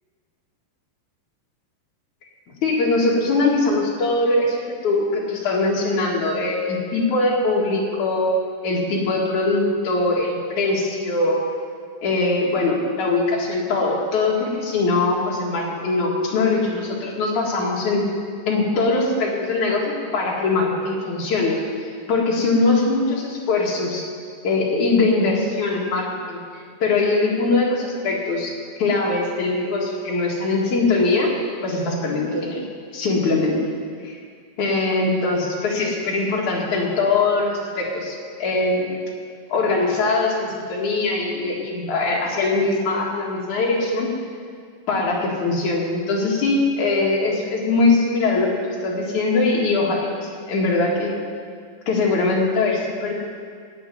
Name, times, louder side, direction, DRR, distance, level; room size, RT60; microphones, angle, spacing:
voice 1, 2.6-8.3 8.6-11.4 12.0-18.1 18.5-24.0 24.4-26.4 26.8-31.3 31.6-32.6 32.9-33.6 34.0-34.2 34.6-39.1 39.5-44.1 44.9-51.1 51.9-53.1, left 3 dB, 50° left, -3 dB, 3.0 m, -21 dB
17.5 x 6.2 x 9.3 m, 2.1 s
omnidirectional pair, 4.9 m